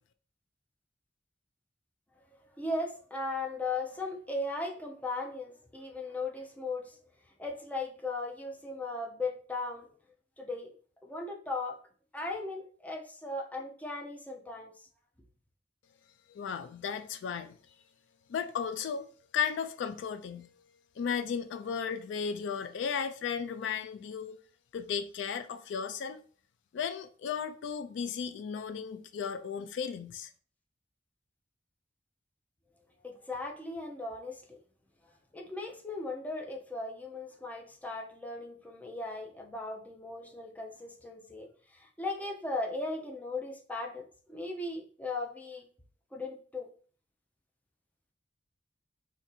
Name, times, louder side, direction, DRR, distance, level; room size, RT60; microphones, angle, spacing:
voice 1, 2.6-7.0 7.4-9.9 10.4-10.7 11.0-11.8 12.1-14.7 33.0-34.6 35.3-45.6 46.1-46.7, left 2 dB, 10° left, 0.5 m, -37 dB
voice 2, 16.3-17.6 18.3-19.1 19.3-20.5 21.0-24.4 24.7-26.2 26.7-30.3, left 7 dB, 70° left, 0.3 m, -35 dB
2.6 x 2.6 x 4.0 m
head